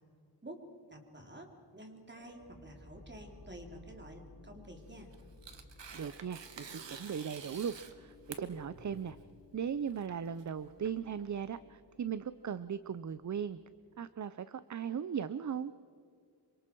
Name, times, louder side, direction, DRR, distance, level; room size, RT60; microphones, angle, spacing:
voice 1, 0.9-5.1, right 1 dB, 25° right, 2 dB, 3.3 m, -50 dB
sound 1, 2.1-14.1, left 3 dB, 55° left, 4.4 m, -59 dB
Tearing, 4.8-11.6, right 5 dB, 85° right, 1.5 m, -50 dB
voice 2, 5.9-9.2 9.5-13.6 14.0-15.7, right 7 dB, 45° right, 14 dB, 0.5 m, -38 dB
27.5 x 25.0 x 4.6 m, 2.3 s
wide cardioid pair, 100°, 42 cm